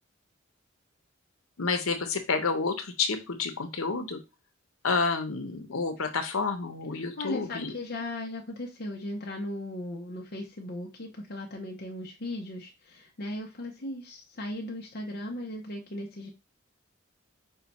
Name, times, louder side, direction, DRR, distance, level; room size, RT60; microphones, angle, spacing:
voice 1, 1.6-4.2 4.8-7.7, left 4 dB, 85° left, 7 dB, 0.8 m, -29 dB
voice 2, 7.2-16.3, left 1 dB, 50° left, -1 dB, 0.7 m, -37 dB
5.4 x 2.2 x 4.1 m, 0.26 s
head